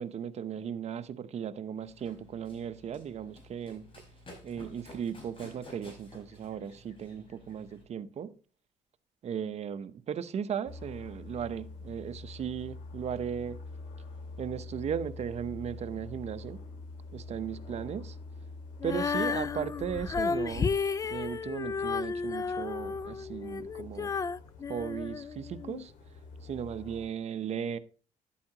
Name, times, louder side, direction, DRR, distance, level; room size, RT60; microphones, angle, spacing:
voice 1, 0.0-3.9 4.4-8.3 9.2-13.6 14.4-16.6 17.1-18.2 18.8-20.7 21.1-24.1 24.7-25.9 26.4-27.8, right 8 dB, 55° right, 0.8 m, -36 dB
Run, 1.8-7.8, left 1 dB, 40° left, 5.2 m, -53 dB
raw airplanes, 10.7-27.1, left 3 dB, 85° left, 2.2 m, -46 dB
Female singing, 18.8-25.8, left 5 dB, 25° left, 0.4 m, -33 dB
11.0 x 8.4 x 2.9 m
cardioid pair, 100°, 13 cm